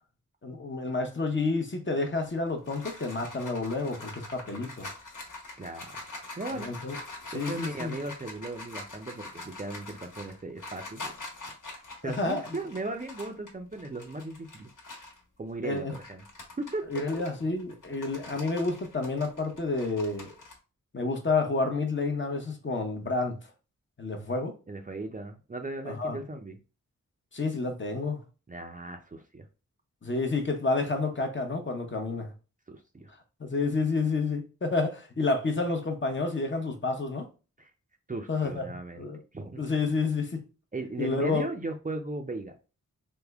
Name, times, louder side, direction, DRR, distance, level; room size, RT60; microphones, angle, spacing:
voice 1, 0.4-4.9 6.6-7.0 7.3-7.9 12.0-12.4 15.6-15.9 16.9-20.3 20.9-23.4 24.0-24.5 25.8-26.2 27.3-28.2 30.0-32.3 33.4-37.3 38.3-39.2 39.6-40.4 41.0-41.5, left 3 dB, 35° left, 0.8 m, -29 dB
sound 1, 2.3-15.2 15.6-20.5, left 2 dB, 70° left, 1.2 m, -44 dB
voice 2, 5.6-6.0 6.4-6.7 7.3-11.1 11.5-11.6 12.0-14.7 15.4-16.2 16.6-16.9 24.7-26.6 28.5-29.5 32.7-33.1 37.6-37.7 38.1-39.0 39.3-39.6 40.7-42.5, right 2 dB, 25° right, 0.5 m, -37 dB
3.4 x 2.1 x 3.4 m
wide cardioid pair, 65°, 33 cm